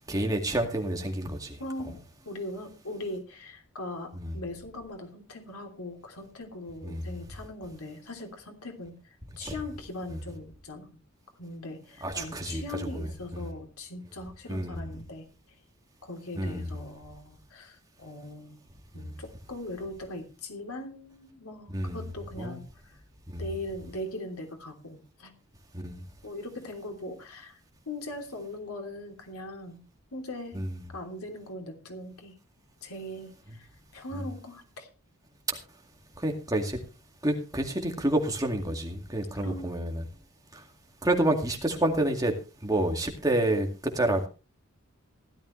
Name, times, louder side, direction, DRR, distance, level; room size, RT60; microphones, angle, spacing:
voice 1, 0.1-1.6 4.2-4.3 6.8-7.1 9.4-9.5 12.0-12.6 14.5-14.8 16.3-16.7 18.9-19.1 21.7-22.0 22.4-22.6 23.3-23.5 25.7-26.0 30.5-30.7 36.2-36.8 37.2-40.0 40.5-40.6 41.0-42.3 42.6-43.7 43.9-44.2, right 1 dB, 15° right, 2.2 m, -28 dB
voice 2, 1.6-2.0 2.2-11.0 11.4-15.3 16.0-18.6 18.9-23.0 23.4-25.3 26.2-27.6 27.8-29.8 30.1-30.6 30.9-32.4 32.8-34.9 39.4-39.7, left 1 dB, 90° left, 3.2 m, -40 dB
16.0 x 12.5 x 3.2 m
head